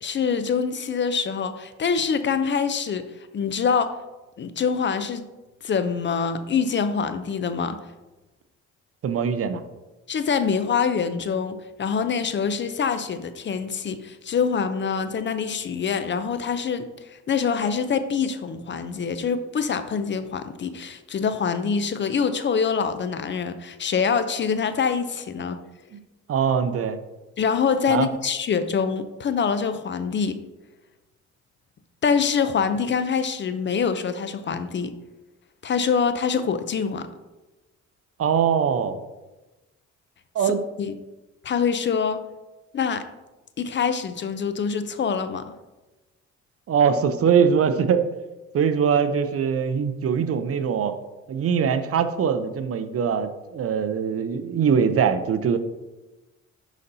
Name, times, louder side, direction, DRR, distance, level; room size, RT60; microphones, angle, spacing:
voice 1, 0.0-3.1 3.3-4.0 4.4-5.2 5.6-7.8 10.1-25.6 27.4-30.4 32.0-34.9 35.6-37.1 40.4-40.9 41.4-42.2 42.7-43.1 43.6-45.5, left 6 dB, 40° left, 11 dB, 0.5 m, -25 dB
voice 2, 9.0-9.6 25.9-26.0 26.3-27.0 27.9-28.1 38.2-39.0 40.3-40.6 46.7-48.1 48.5-50.9 51.3-55.6, right 7 dB, 50° right, 10 dB, 0.6 m, -22 dB
11.0 x 4.1 x 2.7 m, 1.1 s
cardioid pair, 90°, 30 cm